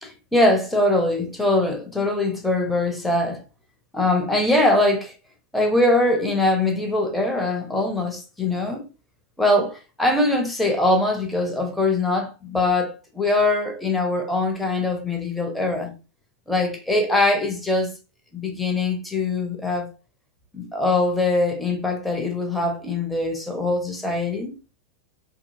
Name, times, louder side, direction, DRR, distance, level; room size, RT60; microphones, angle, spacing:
voice 1, 0.0-3.4 3.9-5.1 5.5-8.9 9.4-15.9 16.5-17.9 18.3-19.9 20.5-24.6, left 2 dB, 5° left, 0.7 m, -22 dB
2.8 x 2.7 x 2.6 m
figure-of-eight pair, 90°, 0 cm